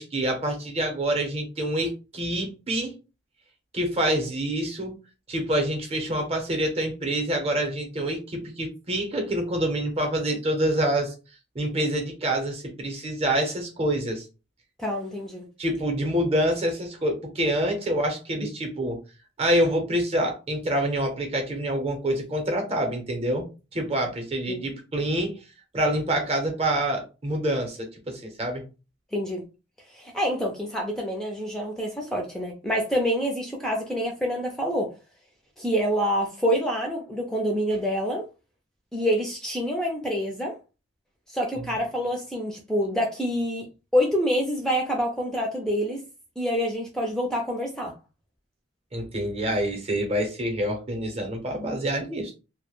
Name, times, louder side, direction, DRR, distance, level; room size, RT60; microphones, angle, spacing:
voice 1, 0.0-3.0 3.7-5.0 5.3-11.1 11.5-14.2 15.6-19.0 19.4-23.5 23.7-25.3 25.7-28.6 48.9-52.4, right 1 dB, 35° right, 4 dB, 0.6 m, -26 dB
voice 2, 14.8-15.5 24.5-24.6 29.1-29.4 29.9-34.9 35.6-38.2 38.9-40.5 41.3-43.7 43.9-46.0 46.4-47.9, equal, 5° left, 0 dB, 0.4 m, -27 dB
2.2 x 2.1 x 3.0 m, 0.31 s
head